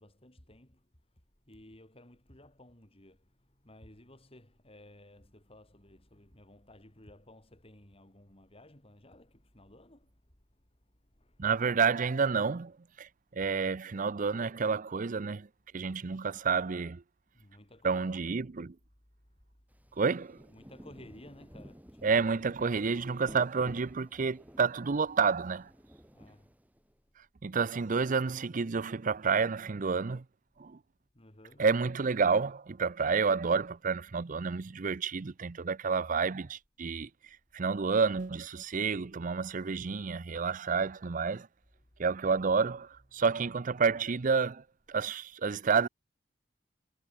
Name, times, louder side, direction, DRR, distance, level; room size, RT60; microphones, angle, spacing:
voice 1, 0.0-11.5 17.3-18.0 19.2-19.9 20.5-22.2 26.1-26.6 31.1-31.7 42.7-42.8 43.1-43.2, left 1 dB, 30° left, 4.0 m, -56 dB
voice 2, 11.4-15.5 15.7-17.0 17.8-18.7 20.0-20.4 22.0-25.7 27.4-30.2 30.6-30.8 31.6-37.1 37.5-41.5 42.0-44.6 44.9-45.9, right 5 dB, 45° right, 0.6 m, -29 dB
Rain, 19.7-26.9, equal, 10° right, 2.0 m, -53 dB
head